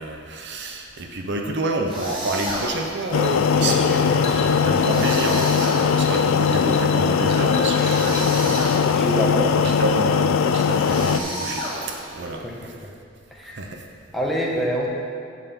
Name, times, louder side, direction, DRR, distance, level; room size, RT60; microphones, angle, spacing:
voice 1, 0.0-9.2 9.6-12.4 13.6-13.8, right 2 dB, 60° right, 3 dB, 0.7 m, -29 dB
sound 1, 1.9-3.0 4.8-6.3 7.8-9.1 10.8-12.2, equal, 25° right, 2.3 m, -30 dB
sound 2, 2.5-8.6, left 3 dB, 35° left, 1.1 m, -37 dB
sound 3, 3.1-11.2, left 6 dB, 80° left, 0.4 m, -20 dB
voice 2, 3.6-5.0 8.9-9.6 12.4-12.6 12.8-12.9 13.3-13.6 14.1-14.9, equal, ahead, -4 dB, 1.1 m, -27 dB
8.9 x 5.5 x 5.5 m, 2.3 s
head